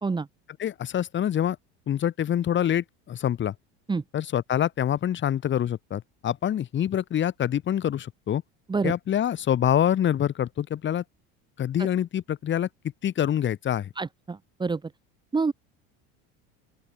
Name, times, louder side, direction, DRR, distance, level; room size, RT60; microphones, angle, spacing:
voice 1, 0.6-1.6 1.9-3.5 4.1-8.4 8.8-11.0 11.6-12.7 13.0-13.9, left 10 dB, 35° left, 6.6 m, -26 dB
voice 2, 14.0-14.8 15.3-15.5, right 4 dB, 15° right, 2.3 m, -27 dB
open air
cardioid pair, 135°, 32 cm